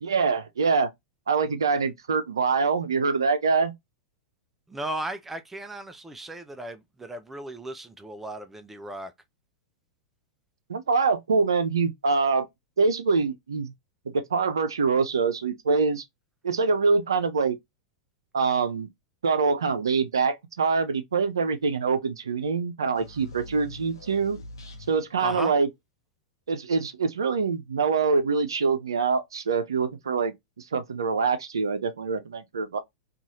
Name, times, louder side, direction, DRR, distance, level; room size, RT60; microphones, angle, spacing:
voice 1, 0.0-0.9 1.3-3.7 10.7-12.5 12.8-13.7 14.1-16.0 16.4-17.6 18.3-18.9 19.2-24.4 24.9-25.7 26.5-32.8, right 4 dB, 80° right, 0.5 m, -24 dB
voice 2, 4.7-9.1 25.2-25.5, right 1 dB, 10° right, 0.4 m, -36 dB
sound 1, 22.9-25.3, left 2 dB, 80° left, 0.9 m, -44 dB
2.6 x 2.4 x 2.8 m
hypercardioid pair, 100°, 2 cm